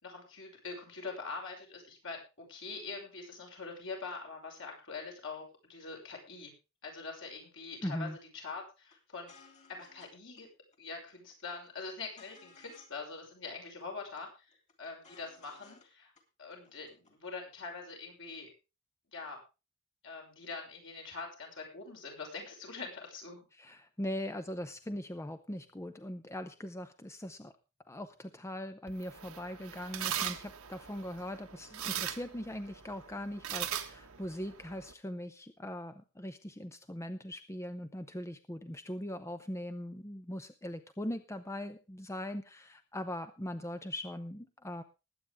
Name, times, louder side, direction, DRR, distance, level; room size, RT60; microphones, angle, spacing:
voice 1, 0.0-6.5 6.8-8.1 8.3-9.3 9.7-10.5 10.8-16.1 16.4-18.5 19.1-19.4 20.0-23.5, left 4 dB, 60° left, 2 dB, 5.9 m, -44 dB
voice 2, 7.8-8.2 23.5-27.5 27.9-44.8, left 1 dB, 15° left, 9 dB, 0.7 m, -40 dB
sound 1, 8.9-9.0 9.3-10.1 10.4-10.5 10.7-11.3 11.6-13.0 13.3-13.4 13.6-14.2 14.5-15.9 16.2-16.3 16.5-17.1, left 5 dB, 35° left, 3.2 m, -59 dB
sound 2, 28.9-34.9, right 9 dB, 80° right, 1.4 m, -40 dB
20.0 x 8.9 x 3.5 m, 0.30 s
head